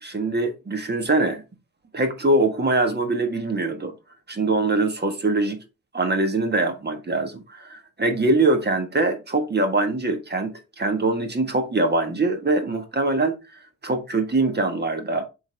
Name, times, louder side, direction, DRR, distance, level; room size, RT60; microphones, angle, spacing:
voice 1, 0.0-1.4 1.9-3.9 4.3-5.6 5.9-15.3, right 2 dB, 35° right, 1.6 m, -23 dB
7.2 x 4.0 x 3.4 m
cardioid pair, 65°, 29 cm